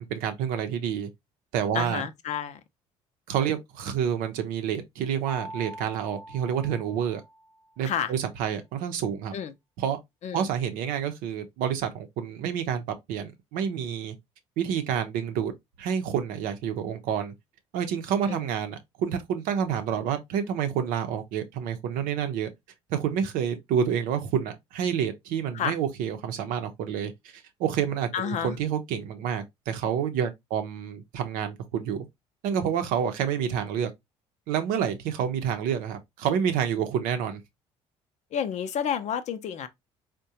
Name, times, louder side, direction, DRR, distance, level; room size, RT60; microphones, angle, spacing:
voice 1, 0.1-1.1 1.5-2.0 3.3-7.2 7.8-9.3 9.8-10.0 10.3-12.8 13.1-14.1 14.6-15.5 15.8-17.3 17.7-22.5 22.9-27.1 27.6-32.0 32.4-33.9 34.5-37.4, right 8 dB, 75° right, 0.6 m, -28 dB
voice 2, 1.7-2.6 7.8-8.1 9.3-9.5 10.2-10.5 18.3-18.4 25.5-25.8 28.1-28.6 38.3-39.7, left 8 dB, 55° left, 0.6 m, -30 dB
Mallet percussion, 5.3-7.8, right 1 dB, ahead, 0.7 m, -43 dB
3.6 x 2.2 x 2.7 m
supercardioid pair, 65°, 14 cm